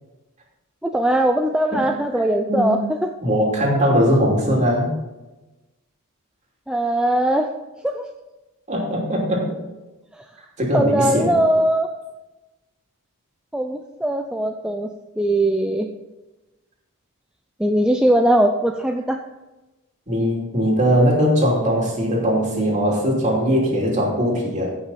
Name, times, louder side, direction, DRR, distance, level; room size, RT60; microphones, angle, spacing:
voice 1, 0.8-3.1 6.7-7.5 7.8-8.0 10.7-11.9 13.5-14.9 15.2-15.9 17.6-19.2, right 1 dB, 5° right, 3 dB, 0.5 m, -20 dB
voice 2, 3.2-5.0 8.7-9.6 10.6-11.4 20.1-24.8, equal, 35° right, -2 dB, 3.0 m, -20 dB
15.5 x 6.1 x 4.2 m, 1.1 s
head